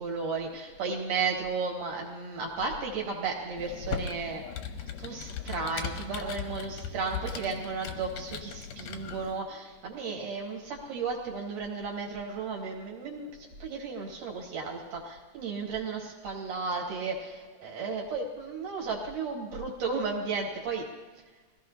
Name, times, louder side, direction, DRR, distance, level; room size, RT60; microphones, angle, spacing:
voice 1, 0.0-4.4 5.0-20.8, right 4 dB, 55° right, -1 dB, 3.5 m, -34 dB
Computer keyboard, 3.6-9.4, left 7 dB, 75° left, 2.0 m, -38 dB
22.0 x 16.5 x 2.9 m, 1.3 s
omnidirectional pair, 4.8 m